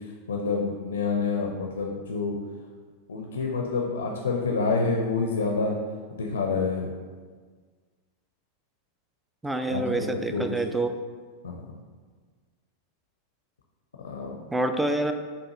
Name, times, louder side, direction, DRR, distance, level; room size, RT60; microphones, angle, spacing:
voice 1, 0.3-2.4 3.1-5.8 6.1-6.9 9.7-10.4 11.4-11.6 14.0-14.4, left 4 dB, 70° left, 0 dB, 0.5 m, -28 dB
voice 2, 9.4-11.0 14.5-15.1, right 2 dB, 5° right, 7 dB, 0.3 m, -27 dB
7.0 x 2.4 x 2.9 m, 1.5 s
figure-of-eight pair, 90°, 0 cm